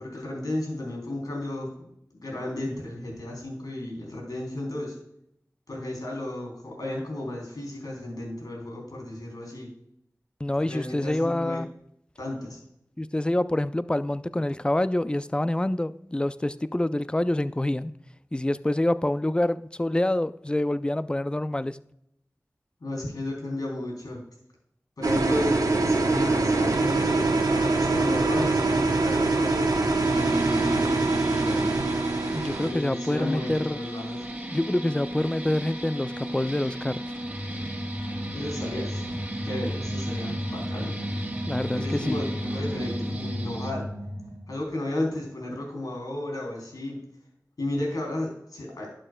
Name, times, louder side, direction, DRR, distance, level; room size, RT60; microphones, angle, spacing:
voice 1, 0.0-1.7 2.1-5.0 5.7-9.7 10.6-11.6 12.2-12.6 22.8-24.2 25.0-29.8 30.1-31.9 32.6-34.2 38.3-39.0 39.4-40.9 41.7-43.9 44.5-47.0 47.6-48.9, left 1 dB, 85° left, -1 dB, 3.3 m, -33 dB
voice 2, 10.4-11.7 13.0-17.9 18.3-21.8 32.3-33.8 34.5-37.1 41.5-42.2, left 1 dB, 15° left, 14 dB, 0.4 m, -26 dB
sound 1, 25.0-32.7, right 3 dB, 90° right, 1.2 m, -24 dB
sound 2, 30.0-43.7, right 1 dB, 25° right, 2.3 m, -36 dB
sound 3, 37.2-44.6, equal, 40° right, 1.6 m, -34 dB
12.0 x 7.7 x 2.3 m, 0.75 s
wide cardioid pair, 45°, 6 cm